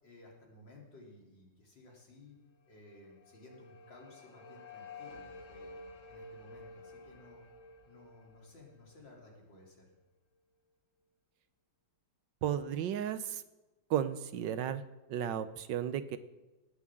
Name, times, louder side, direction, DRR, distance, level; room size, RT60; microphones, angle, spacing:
voice 1, 0.0-2.4 2.7-5.7 6.1-7.4 7.9-9.9, left 2 dB, 80° left, -2 dB, 4.1 m, -56 dB
sound 1, 2.8-9.9, left 3 dB, 50° left, 1.5 m, -52 dB
voice 2, 12.4-13.4 13.9-14.8 15.1-16.2, right 10 dB, 75° right, 12 dB, 1.5 m, -34 dB
18.0 x 7.5 x 7.6 m, 1.1 s
omnidirectional pair, 2.0 m